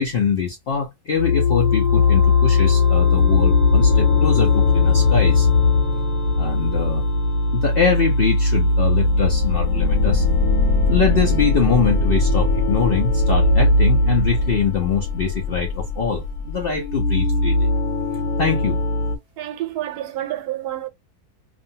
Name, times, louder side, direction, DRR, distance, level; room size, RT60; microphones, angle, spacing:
voice 1, 0.0-5.5 6.4-7.0 7.5-10.3 10.9-17.7 18.4-18.8, left 6 dB, 65° left, 0.6 m, -23 dB
sound 1, 1.2-19.2, left 3 dB, 90° left, 1.2 m, -19 dB
voice 2, 19.4-20.9, right 13 dB, 85° right, 1.1 m, -28 dB
2.6 x 2.3 x 2.7 m
omnidirectional pair, 1.6 m